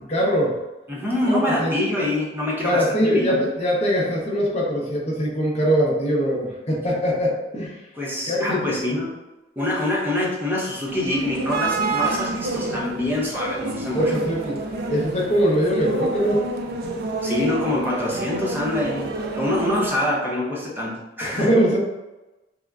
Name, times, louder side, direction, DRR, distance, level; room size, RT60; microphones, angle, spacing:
voice 1, 0.1-0.6 1.3-1.7 2.6-7.8 8.3-9.0 13.9-14.6 14.9-16.5 21.2-21.8, equal, 40° left, -3 dB, 0.6 m, -22 dB
voice 2, 0.9-3.5 8.0-9.1 9.6-14.1 17.2-19.1 19.3-21.5, left 1 dB, 10° right, -4 dB, 0.6 m, -25 dB
sound 1, 10.9-19.9, right 2 dB, 60° right, 0.3 m, -28 dB
3.6 x 2.1 x 2.3 m, 1.0 s
head